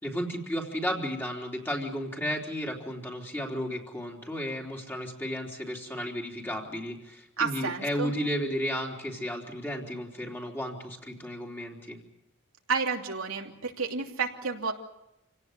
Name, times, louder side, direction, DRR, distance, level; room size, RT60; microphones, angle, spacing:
voice 1, 0.0-12.0, equal, 10° left, -1 dB, 3.5 m, -33 dB
voice 2, 7.4-8.1 12.7-14.7, right 5 dB, 85° right, 1 dB, 2.8 m, -30 dB
28.0 x 17.5 x 8.1 m, 0.90 s
head